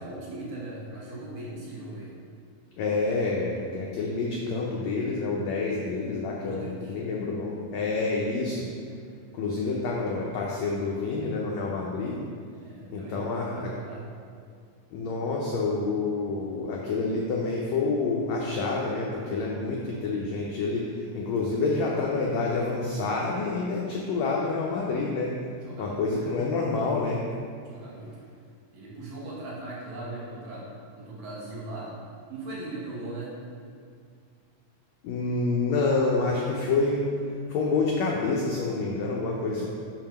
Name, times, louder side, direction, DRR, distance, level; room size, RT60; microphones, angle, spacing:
voice 1, 0.0-2.1 6.4-7.0 12.6-14.1 25.6-26.3 27.7-28.1 28.7-30.7 31.0-31.9 32.3-33.4, right 2 dB, 65° right, -7 dB, 2.6 m, -39 dB
voice 2, 2.8-8.7 9.3-12.2 12.9-13.7 14.9-25.4 25.8-27.2 35.0-37.2 37.5-39.7, left 3 dB, 90° left, -2 dB, 1.5 m, -28 dB
6.9 x 2.9 x 5.7 m, 2.2 s
omnidirectional pair, 3.8 m